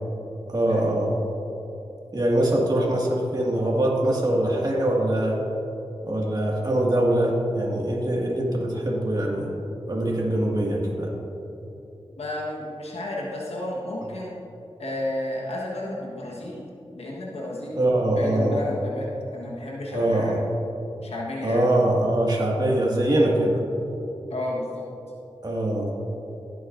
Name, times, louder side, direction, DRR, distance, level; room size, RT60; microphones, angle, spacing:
voice 1, 0.5-1.1 2.1-5.4 6.0-9.5 9.9-11.1 17.8-18.6 19.9-20.4 21.4-23.6 25.4-25.9, right 1 dB, 40° right, -3 dB, 2.0 m, -23 dB
voice 2, 12.2-14.4 14.8-16.7 16.9-17.8 18.1-20.4 21.0-21.7 24.3-24.9, left 1 dB, 80° left, -4 dB, 1.4 m, -32 dB
15.5 x 8.0 x 2.6 m, 2.8 s
cardioid pair, 45°, 10 cm